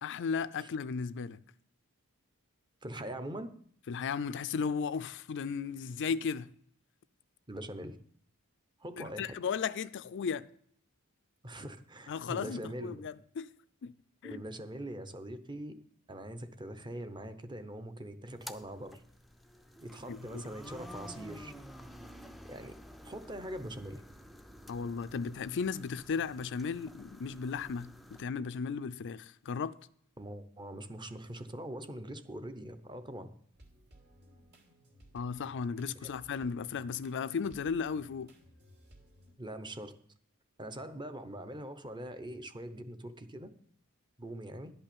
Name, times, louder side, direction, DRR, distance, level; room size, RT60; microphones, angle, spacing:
voice 1, 0.0-1.4 3.9-6.5 9.0-10.5 12.1-13.5 13.8-13.9 14.2-14.4 20.1-20.4 24.7-29.7 35.1-38.3, left 5 dB, 55° left, 0.4 m, -35 dB
voice 2, 2.8-3.5 7.5-8.0 8.8-9.4 11.4-13.0 14.2-15.7 16.1-19.0 19.8-21.5 22.4-22.8 23.0-24.0 30.2-33.3 36.0-36.1 39.4-39.9 40.6-43.5 44.2-44.7, right 1 dB, 20° right, 0.8 m, -42 dB
sound 1, 18.3-28.2, equal, ahead, 0.5 m, -50 dB
sound 2, 33.5-39.3, equal, 50° right, 2.8 m, -59 dB
11.0 x 5.5 x 8.7 m
head